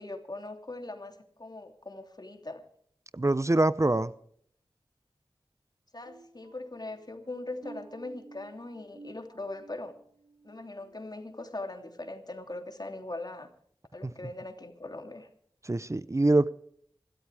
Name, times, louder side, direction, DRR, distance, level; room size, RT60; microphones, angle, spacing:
voice 1, 0.0-2.6 5.9-9.9 10.4-13.5 13.9-15.3, left 2 dB, 50° left, 3.0 m, -40 dB
voice 2, 3.1-4.1 14.0-14.1 15.6-16.5, right 2 dB, 35° right, 0.7 m, -24 dB
sound 1, 6.1-11.7 12.1-12.4 12.9-13.1, right 3 dB, 80° right, 2.0 m, -54 dB
26.5 x 13.0 x 3.5 m
wide cardioid pair, 40°, 9 cm